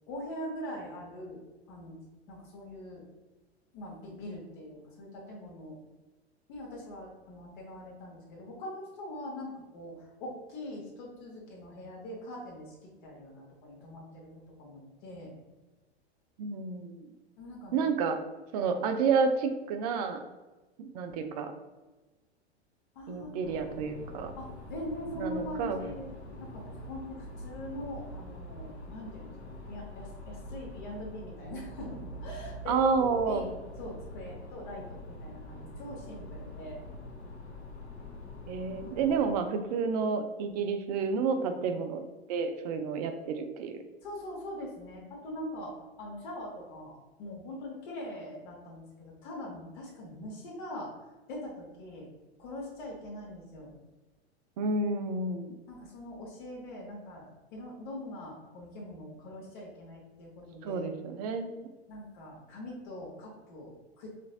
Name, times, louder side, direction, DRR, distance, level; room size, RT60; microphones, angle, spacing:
voice 1, 0.1-1.4 1.7-2.0 2.3-3.1 3.7-5.8 6.5-14.3 14.6-15.3 17.4-17.8 22.9-23.3 24.4-26.1 26.4-33.5 33.8-36.8 44.0-50.9 51.3-52.1 52.4-53.8 55.7-60.9 61.9-64.1, left 1 dB, 50° left, -2 dB, 1.0 m, -42 dB
voice 2, 16.4-17.1 17.7-18.2 18.5-20.2 20.8-21.5 23.1-24.3 25.1-25.8 32.7-33.5 38.5-43.7 54.6-55.5 60.6-61.5, right 5 dB, 40° right, 7 dB, 0.4 m, -30 dB
sound 1, 23.4-39.2, left 1 dB, 80° left, 0.7 m, -44 dB
3.9 x 2.5 x 2.4 m, 1.2 s
figure-of-eight pair, 90°, 33 cm